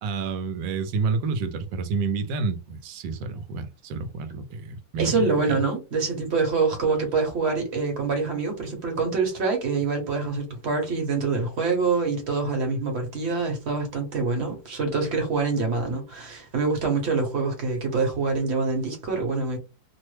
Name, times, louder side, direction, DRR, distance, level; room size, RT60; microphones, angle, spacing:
voice 1, 0.0-5.6, right 4 dB, 80° right, 1.2 m, -29 dB
voice 2, 5.0-19.6, right 4 dB, 45° right, 1.0 m, -25 dB
3.1 x 2.1 x 3.2 m
omnidirectional pair, 2.0 m